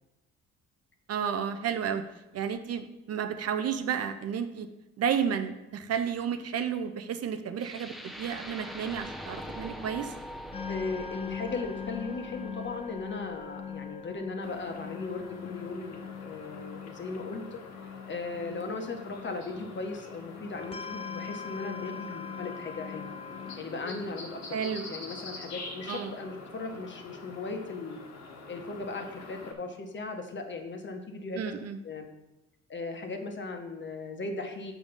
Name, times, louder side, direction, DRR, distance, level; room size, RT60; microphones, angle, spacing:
voice 1, 1.1-2.0 2.3-4.7 5.0-10.1 24.5-24.8 25.9-26.1 31.4-31.8, right 8 dB, 55° right, 8 dB, 0.7 m, -32 dB
sound 1, 7.6-15.6, equal, ahead, 0.9 m, -44 dB
sound 2, 10.5-23.6, left 7 dB, 20° left, 0.5 m, -42 dB
voice 2, 10.7-17.6 18.1-23.1 23.6-24.6 24.9-28.0 28.5-31.4 31.8-32.1 32.7-34.7, left 3 dB, 40° left, 4 dB, 1.3 m, -37 dB
sound 3, 14.4-29.5, left 3 dB, 65° left, 1.6 m, -45 dB
7.0 x 5.2 x 5.3 m, 0.94 s
cardioid pair, 90°, 30 cm